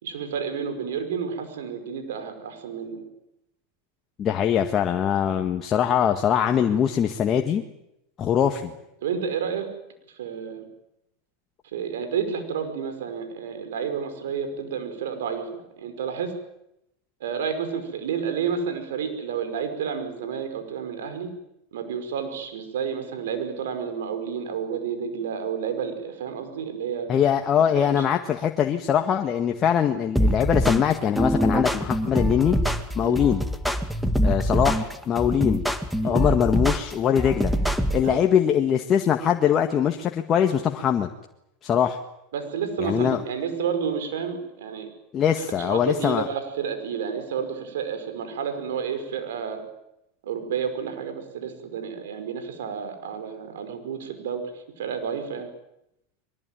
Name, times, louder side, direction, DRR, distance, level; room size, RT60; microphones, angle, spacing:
voice 1, 0.0-3.1 9.0-9.7 10.2-10.7 11.7-15.5 15.8-16.3 17.2-21.3 21.7-27.1 27.7-28.1 33.0-33.2 36.0-36.2 38.0-38.2 42.3-44.9 45.4-49.6 50.2-55.5, right 7 dB, 80° right, 8 dB, 5.4 m, -30 dB
voice 2, 4.2-7.6 8.2-8.7 27.1-32.6 33.0-33.4 34.2-35.6 36.0-37.5 37.9-41.1 41.6-42.0 42.8-43.2 45.1-46.3, left 9 dB, 35° left, 4 dB, 1.8 m, -22 dB
sound 1, 30.2-38.1, equal, ahead, 2.1 m, -24 dB
23.0 x 20.5 x 9.3 m, 0.83 s
hypercardioid pair, 105°, 0 cm